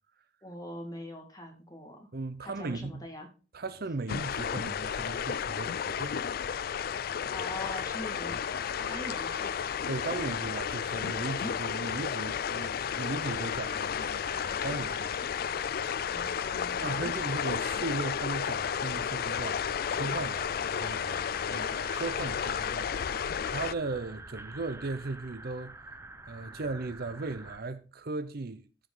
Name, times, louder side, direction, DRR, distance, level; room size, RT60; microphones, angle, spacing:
voice 1, 0.4-2.1 2.4-3.3 7.3-8.4 8.9-10.1 16.1-17.4, equal, 20° left, 2.1 m, -43 dB
voice 2, 2.1-3.0 3.5-6.4 9.9-15.3 16.8-19.7 19.9-23.2 23.5-25.9 26.3-28.7, right 3 dB, 55° right, 0.7 m, -37 dB
sound 1, 4.1-23.7, left 8 dB, 50° left, 0.3 m, -32 dB
sound 2, 7.3-12.5, left 5 dB, 90° left, 1.1 m, -49 dB
sound 3, 7.7-27.6, right 2 dB, 15° right, 0.7 m, -48 dB
14.5 x 5.1 x 3.8 m
head